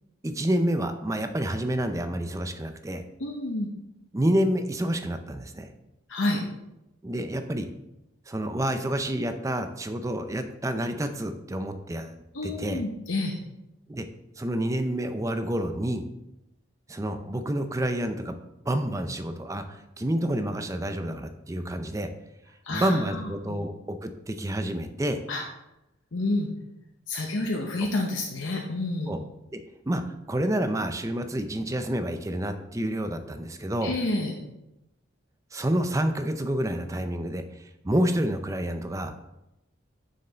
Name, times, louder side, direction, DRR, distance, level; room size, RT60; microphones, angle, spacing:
voice 1, 0.2-3.0 4.1-5.7 7.0-7.7 8.3-12.2 12.4-12.8 13.9-14.1 14.4-16.1 16.9-18.4 18.7-22.1 22.7-25.2 27.8-27.9 29.1-29.2 29.5-33.9 35.5-39.2, right 1 dB, 15° right, 8 dB, 0.5 m, -28 dB
voice 2, 3.2-3.7 6.1-6.4 12.3-13.4 22.6-23.6 25.3-25.4 26.1-26.5 27.1-29.1 33.8-34.3, left 2 dB, 70° left, 0 dB, 0.9 m, -29 dB
6.8 x 6.5 x 3.9 m, 0.92 s
head